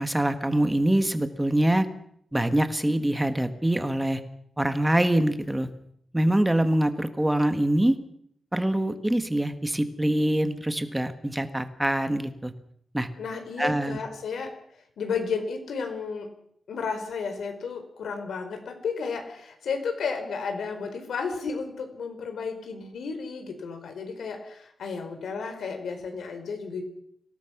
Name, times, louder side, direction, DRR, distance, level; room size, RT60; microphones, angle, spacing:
voice 1, 0.0-1.9 2.3-4.2 4.6-5.7 6.1-8.0 8.5-12.5 12.9-13.1 13.6-14.0, right 1 dB, 10° right, 9 dB, 1.5 m, -24 dB
voice 2, 13.2-14.5 15.0-16.3 16.7-26.8, left 5 dB, 90° left, 6 dB, 4.6 m, -33 dB
25.5 x 17.5 x 6.0 m, 0.69 s
wide cardioid pair, 180°, 0 cm